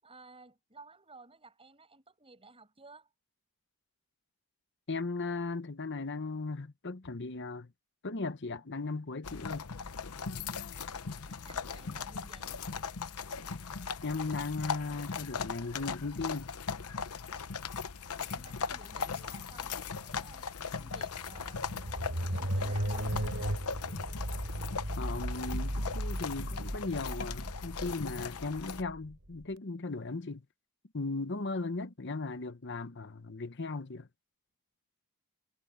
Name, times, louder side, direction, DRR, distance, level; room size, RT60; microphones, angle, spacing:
voice 1, 0.0-3.1 11.3-12.6 18.2-21.7 22.2-23.2, right 3 dB, 25° right, 7.7 m, -55 dB
voice 2, 4.9-7.7 8.0-9.7 14.0-16.5 25.0-30.4 30.9-34.1, left 3 dB, 55° left, 1.0 m, -37 dB
sound 1, 9.2-28.8, left 5 dB, 90° left, 0.9 m, -39 dB
sound 2, 21.1-29.4, equal, 65° right, 4.0 m, -36 dB
head